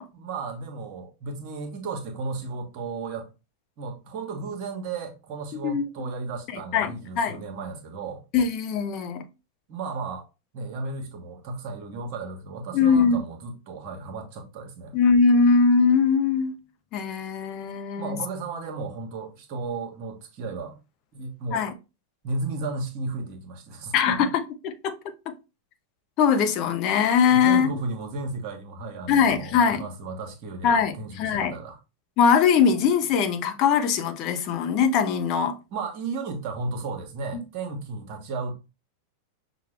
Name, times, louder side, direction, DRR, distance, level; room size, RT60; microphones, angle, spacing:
voice 1, 0.1-3.3 3.8-8.2 9.7-10.3 10.5-14.9 18.0-20.8 21.1-21.7 22.2-24.2 27.3-31.8 35.7-38.6, right 3 dB, 45° right, 1.1 m, -34 dB
voice 2, 5.6-6.1 6.5-7.4 8.3-9.2 12.7-13.2 14.9-16.5 16.9-18.2 21.5-21.7 23.9-25.0 25.3-25.4 26.2-27.7 29.1-29.8 30.6-31.5 32.2-35.6 37.3-37.4, left 6 dB, 40° left, 0.5 m, -21 dB
5.7 x 2.3 x 3.2 m
figure-of-eight pair, 90°, 0 cm